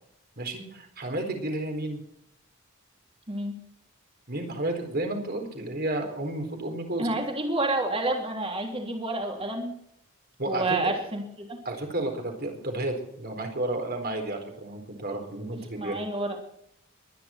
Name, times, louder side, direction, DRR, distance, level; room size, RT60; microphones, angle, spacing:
voice 1, 0.4-2.0 4.3-7.1 10.4-11.0 11.6-16.0, right 1 dB, 45° right, 4 dB, 4.2 m, -32 dB
voice 2, 3.3-3.6 7.0-9.7 10.5-11.6 15.7-16.4, right 2 dB, 25° right, 2 dB, 3.3 m, -29 dB
23.0 x 10.5 x 4.4 m, 0.74 s
head